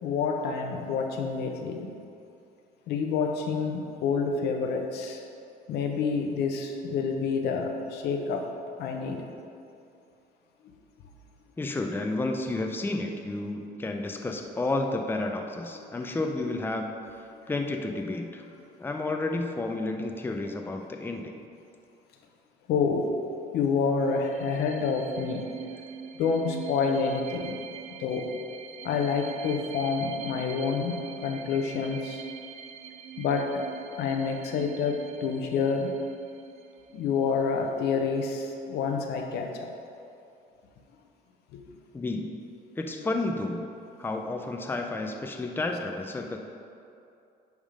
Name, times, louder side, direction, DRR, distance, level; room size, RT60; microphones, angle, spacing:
voice 1, 0.0-2.0 2.9-5.2 5.7-8.5 8.8-9.2 15.7-15.9 17.3-17.5 22.7-23.2 23.5-25.5 26.2-27.6 28.0-28.3 28.8-32.2 33.2-33.6 33.9-36.0 36.9-39.7 41.5-41.6, left 5 dB, 75° left, 3 dB, 0.9 m, -28 dB
voice 2, 11.6-16.9 17.5-18.4 18.8-21.4 41.9-42.4 42.8-43.7 44.0-46.4, left 2 dB, 10° left, 3 dB, 0.6 m, -31 dB
sound 1, 24.0-37.4, right 9 dB, 40° right, 0.4 m, -43 dB
10.5 x 3.6 x 5.0 m, 2.6 s
cardioid pair, 110°, 17 cm